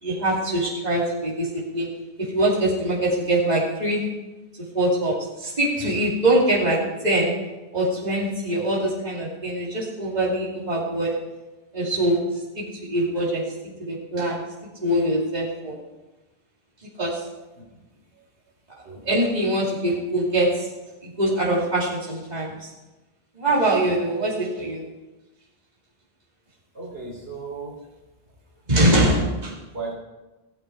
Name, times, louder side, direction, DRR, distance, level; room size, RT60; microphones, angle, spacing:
voice 1, 0.0-1.9 2.3-4.0 4.7-7.3 7.7-11.1 11.7-14.4 14.8-15.8 17.0-17.2 19.0-20.7 21.0-22.7 23.3-24.8 28.7-29.5, right 1 dB, 40° right, -6 dB, 2.9 m, -23 dB
voice 2, 17.5-17.8 18.8-19.0 26.7-27.8 29.0-29.2 29.7-29.9, right 4 dB, 75° right, -3 dB, 3.2 m, -35 dB
17.0 x 8.6 x 4.6 m, 1.1 s
omnidirectional pair, 1.1 m